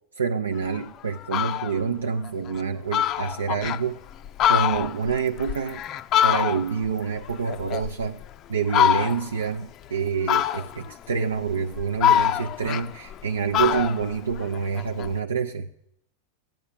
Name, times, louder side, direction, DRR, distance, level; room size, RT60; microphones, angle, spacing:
voice 1, 0.2-4.0 4.5-5.8 6.2-8.2 8.5-15.7, right 6 dB, 70° right, 4 dB, 0.6 m, -27 dB
Fowl, 0.7-0.8 1.2-1.8 2.2-2.3 2.6-2.7 2.9-3.8 4.2-6.9 7.2-8.3 8.7-9.4 10.3-10.9 11.5-13.2 13.5-15.1, left 10 dB, 35° left, 0.5 m, -24 dB
13.5 x 8.9 x 9.3 m, 0.79 s
figure-of-eight pair, 90°, 0 cm